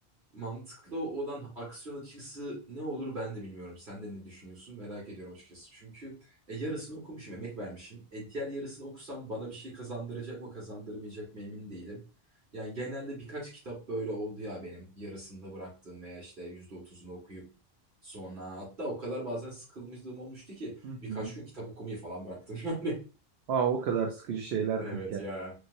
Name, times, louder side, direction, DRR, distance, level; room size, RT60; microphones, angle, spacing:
voice 1, 0.3-12.0 12.5-17.4 18.0-23.0 24.8-25.5, right 1 dB, 50° right, -6 dB, 2.0 m, -39 dB
voice 2, 20.8-21.3 23.5-25.2, right 7 dB, 80° right, 2 dB, 0.8 m, -31 dB
4.8 x 2.0 x 2.6 m, 0.33 s
omnidirectional pair, 1.1 m